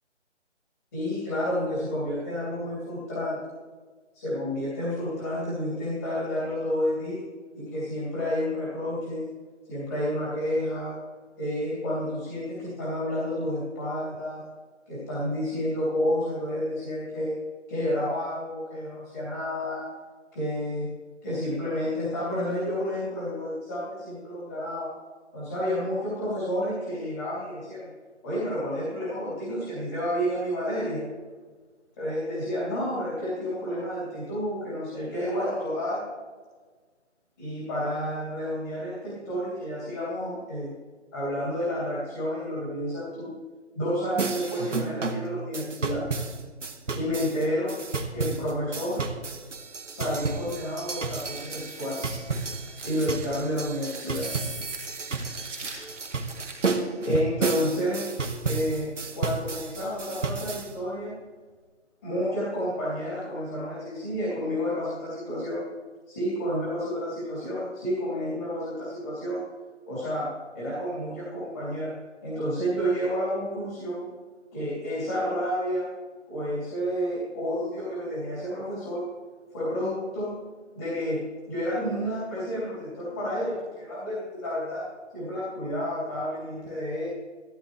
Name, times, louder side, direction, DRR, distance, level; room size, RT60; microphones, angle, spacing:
voice 1, 0.9-3.4 4.1-7.2 7.5-9.3 9.7-10.9 11.4-14.4 14.9-17.4 17.7-19.8 20.3-20.9 21.2-24.9 25.3-27.9 28.2-31.0 32.0-36.1 37.4-40.7 41.1-43.3 43.7-46.0 46.9-47.8 48.1-49.0 49.9-52.0 52.8-54.3 57.0-58.1 58.4-61.1 62.0-65.6 66.1-69.4 69.9-70.3 70.5-71.9 72.2-74.1 74.5-75.9 76.3-79.0 79.5-80.3 80.7-81.2 81.5-84.8 85.1-87.1, equal, 20° left, -9 dB, 3.1 m, -30 dB
sound 1, 44.2-60.7, right 4 dB, 85° right, 1.4 m, -32 dB
sound 2, 50.9-56.8, right 3 dB, 10° right, 2.0 m, -40 dB
14.5 x 14.0 x 3.3 m, 1.4 s
figure-of-eight pair, 175°, 36 cm